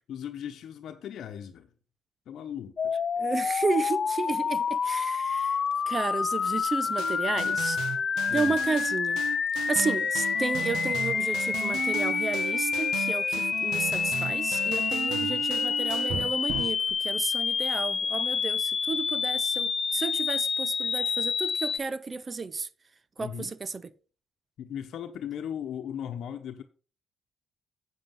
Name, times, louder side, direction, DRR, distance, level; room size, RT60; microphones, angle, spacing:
voice 1, 0.1-1.7 2.3-2.9 8.3-8.6 15.1-15.4 23.2-23.5 24.6-26.6, left 9 dB, 70° left, 1.0 m, -38 dB
sound 1, 2.8-21.8, left 6 dB, 45° left, 0.5 m, -28 dB
voice 2, 3.2-5.6 5.9-7.8 8.3-9.2 9.7-22.7 23.2-23.9, right 4 dB, 35° right, 0.7 m, -32 dB
sound 2, 7.0-16.9, right 9 dB, 85° right, 1.5 m, -35 dB
8.3 x 7.7 x 5.4 m
cardioid pair, 90°, 0 cm